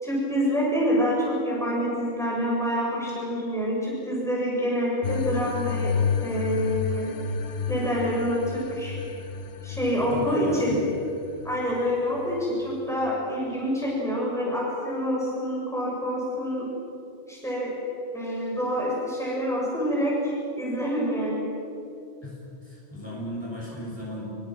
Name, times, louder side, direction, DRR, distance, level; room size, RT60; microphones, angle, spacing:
voice 1, 0.0-5.9 6.2-7.1 7.7-9.0 9.6-10.8 11.4-16.7 17.3-17.7 18.1-21.5, equal, ahead, -5 dB, 7.0 m, -27 dB
sound 1, 5.0-13.1, left 5 dB, 80° left, 1.2 m, -31 dB
voice 2, 10.1-10.8 22.2-22.3 22.6-24.3, left 1 dB, 20° left, -5 dB, 7.2 m, -35 dB
27.5 x 24.0 x 6.2 m, 2.7 s
omnidirectional pair, 1.2 m